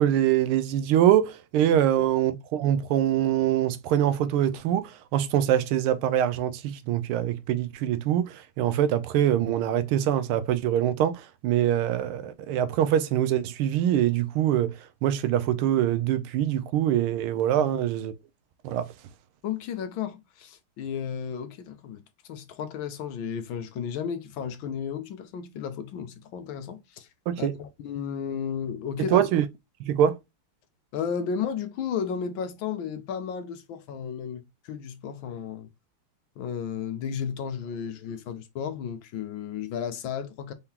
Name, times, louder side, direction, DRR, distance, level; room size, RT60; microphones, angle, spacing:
voice 1, 0.0-18.1 18.6-18.9 27.3-27.5 29.0-29.5 29.8-30.2, right 11 dB, 90° right, 1.5 m, -24 dB
voice 2, 1.7-2.1 17.6-17.7 19.4-22.0 22.3-27.1 27.4-29.2 30.9-35.7 36.4-40.5, left 7 dB, 75° left, 1.4 m, -33 dB
4.5 x 3.6 x 2.8 m
omnidirectional pair, 2.3 m